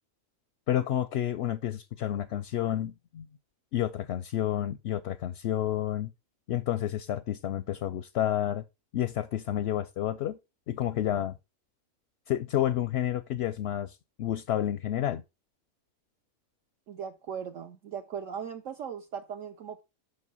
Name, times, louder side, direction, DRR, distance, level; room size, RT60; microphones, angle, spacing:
voice 1, 0.7-3.3 3.7-6.1 6.5-8.6 8.9-10.4 10.7-11.3 12.3-15.2, left 11 dB, 65° left, 0.7 m, -30 dB
voice 2, 16.9-19.8, right 7 dB, 65° right, 1.1 m, -38 dB
6.3 x 5.5 x 5.3 m
omnidirectional pair, 1.5 m